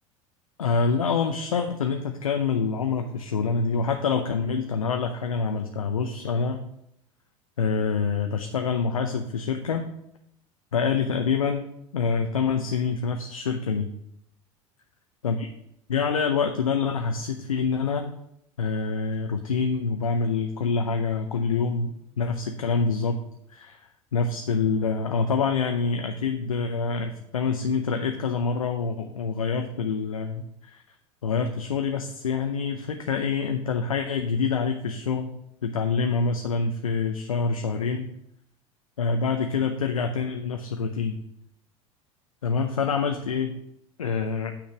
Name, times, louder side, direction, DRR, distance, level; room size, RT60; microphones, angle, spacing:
voice 1, 0.6-6.7 7.6-9.9 10.7-11.6 11.9-13.9 15.2-15.5 15.9-18.1 18.6-23.2 23.5-23.8 24.1-30.8 31.2-35.3 35.6-38.1 39.0-41.2 42.4-43.6 44.0-44.5, left 5 dB, 80° left, 5 dB, 0.6 m, -26 dB
8.8 x 5.1 x 6.0 m, 0.76 s
figure-of-eight pair, 70°, 17 cm